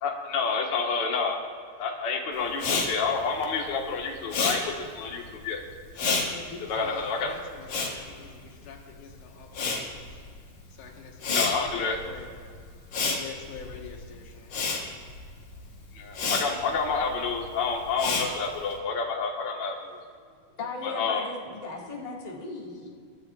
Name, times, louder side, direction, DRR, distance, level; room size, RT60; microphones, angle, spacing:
voice 1, 0.0-1.4 1.8-5.6 6.6-7.3 11.2-12.0 15.9-20.0 20.8-21.3, left 5 dB, 45° left, 0 dB, 1.7 m, -29 dB
Respiratory sounds, 2.5-9.0 9.3-18.7, left 4 dB, 65° left, 3.1 m, -31 dB
voice 2, 6.2-10.2 10.7-12.3 13.1-15.1, left 6 dB, 80° left, 1 dB, 2.8 m, -46 dB
voice 3, 20.6-22.9, left 3 dB, 20° left, -3 dB, 1.3 m, -37 dB
23.5 x 12.5 x 2.4 m, 2.1 s
omnidirectional pair, 3.4 m